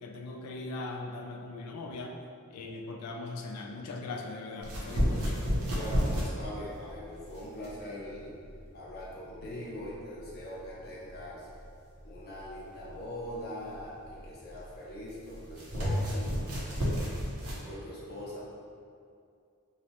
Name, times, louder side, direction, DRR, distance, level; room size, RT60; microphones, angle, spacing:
voice 1, 0.0-2.2 2.5-5.4, left 2 dB, 90° left, 2 dB, 0.3 m, -40 dB
sound 1, 4.6-17.6, equal, 70° right, 0.6 m, -33 dB
voice 2, 5.7-8.3 8.7-11.5 12.0-16.3 17.6-18.4, left 1 dB, 45° left, -6 dB, 0.6 m, -42 dB
2.7 x 2.1 x 2.8 m, 2.4 s
head